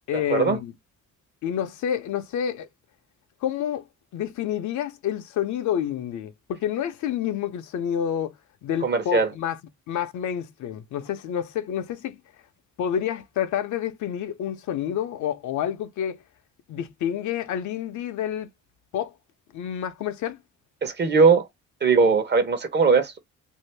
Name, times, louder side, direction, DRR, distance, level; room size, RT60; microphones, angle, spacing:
voice 1, 0.1-0.7 1.4-2.7 3.4-3.9 4.1-8.3 8.6-9.6 9.9-12.2 12.8-16.2 16.7-18.5 18.9-19.1 19.5-20.4, left 9 dB, 75° left, 0.7 m, -28 dB
voice 2, 8.8-9.3 20.8-21.5 21.8-23.2, right 4 dB, 35° right, 0.9 m, -19 dB
2.7 x 2.5 x 3.2 m
cardioid pair, 90°, 30 cm